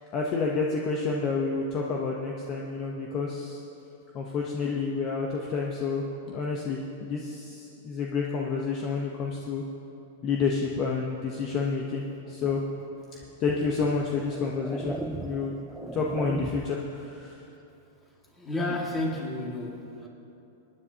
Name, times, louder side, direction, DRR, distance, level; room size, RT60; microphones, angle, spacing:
voice 1, 0.1-3.6 4.1-9.6 10.2-12.6 13.4-15.5 15.9-17.3, left 4 dB, 30° left, -1 dB, 0.9 m, -29 dB
sound 1, 13.2-13.4 14.1-16.9, right 2 dB, 5° right, 0.4 m, -37 dB
voice 2, 18.3-20.1, left 1 dB, 10° left, -2 dB, 2.1 m, -31 dB
25.0 x 9.8 x 2.9 m, 2.8 s
supercardioid pair, 150°, 0 cm